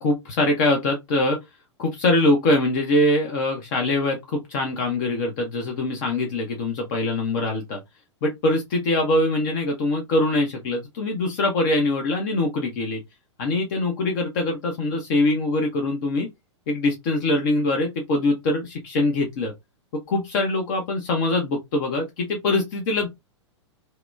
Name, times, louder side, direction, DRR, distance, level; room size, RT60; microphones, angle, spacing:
voice 1, 0.0-1.4 1.8-7.8 8.2-13.0 13.4-16.3 16.7-19.5 20.1-23.1, left 2 dB, 40° left, 0.6 m, -23 dB
2.9 x 2.0 x 2.3 m
figure-of-eight pair, 100°, 15 cm